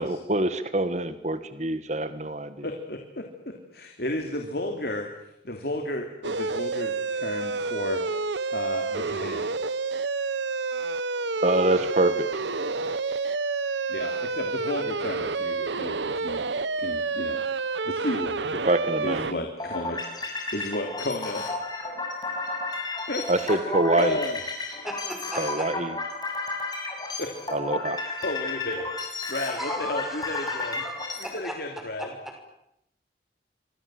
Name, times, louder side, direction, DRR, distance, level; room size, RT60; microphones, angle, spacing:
voice 1, 0.0-2.5 11.4-12.3 18.6-19.3 23.3-24.2 25.4-25.9 27.5-28.0, right 2 dB, 40° right, 11 dB, 1.5 m, -25 dB
voice 2, 2.6-8.3 8.5-9.5 13.9-16.5 16.8-17.4 17.8-18.5 19.0-20.0 20.5-21.5 23.1-23.7 24.0-24.4 27.2-27.3 28.0-30.8 31.2-32.1, left 1 dB, 60° left, 3 dB, 3.1 m, -33 dB
sound 1, 6.2-19.3, right 4 dB, 85° right, 1.1 m, -29 dB
sound 2, 19.6-31.4, left 3 dB, 20° left, 6.7 m, -33 dB
voice 3, 24.8-25.7 29.4-31.5, equal, ahead, 3 dB, 6.4 m, -37 dB
28.0 x 25.0 x 7.8 m, 0.81 s
head